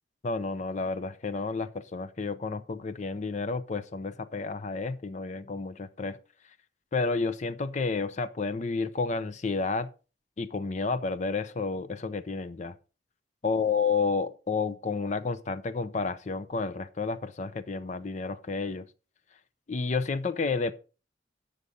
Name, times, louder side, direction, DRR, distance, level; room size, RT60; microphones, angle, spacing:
voice 1, 0.2-6.2 6.9-9.9 10.4-12.7 13.4-18.9 19.7-20.7, left 4 dB, 40° left, 0.5 m, -31 dB
9.7 x 6.7 x 5.2 m
head